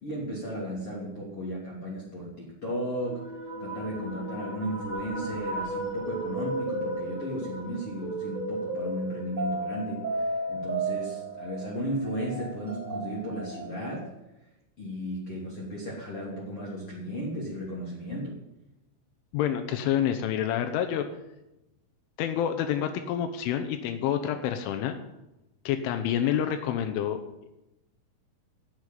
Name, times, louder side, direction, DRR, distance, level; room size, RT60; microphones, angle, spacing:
voice 1, 0.0-3.2 3.6-14.1 14.8-18.3, equal, 35° left, -4 dB, 3.2 m, -35 dB
sound 1, 3.0-14.0, right 2 dB, 15° right, 4.6 m, -34 dB
voice 2, 19.3-21.1 22.2-25.0 25.7-27.2, left 9 dB, 80° left, 7 dB, 3.4 m, -28 dB
13.0 x 8.1 x 9.1 m, 0.93 s
omnidirectional pair, 5.6 m